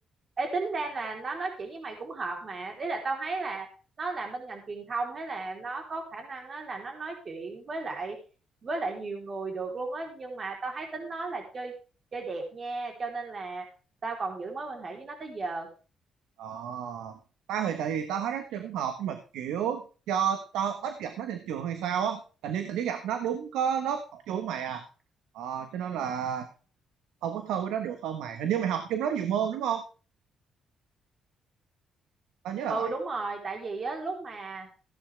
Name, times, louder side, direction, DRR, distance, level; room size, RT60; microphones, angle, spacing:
voice 1, 0.4-3.7 4.0-8.2 8.6-11.7 12.1-13.7 14.0-15.7 32.7-34.7, right 3 dB, 40° right, 3 dB, 3.8 m, -34 dB
voice 2, 16.4-17.2 17.5-24.8 25.3-26.5 27.2-29.8 32.4-32.9, right 8 dB, 90° right, 8 dB, 1.3 m, -31 dB
15.5 x 10.5 x 3.4 m, 0.36 s
cardioid pair, 90°, 0 cm